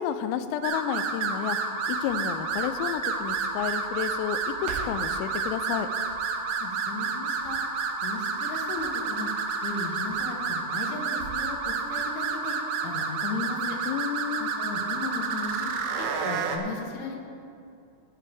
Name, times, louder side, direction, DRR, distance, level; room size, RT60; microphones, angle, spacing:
voice 1, 0.0-1.6 1.9-5.9 13.9-14.5, left 10 dB, 90° left, 11 dB, 3.3 m, -31 dB
sound 1, 0.6-16.6, right 5 dB, 80° right, 3.3 m, -30 dB
Crackle, 1.8-11.6 11.9-12.0, right 3 dB, 65° right, 1.9 m, -48 dB
voice 2, 6.6-7.6 8.0-9.3 9.6-12.6 12.8-13.8 14.4-15.7 16.0-17.2, left 4 dB, 75° left, 1 dB, 3.5 m, -36 dB
17.0 x 10.0 x 3.4 m, 2.5 s
omnidirectional pair, 5.9 m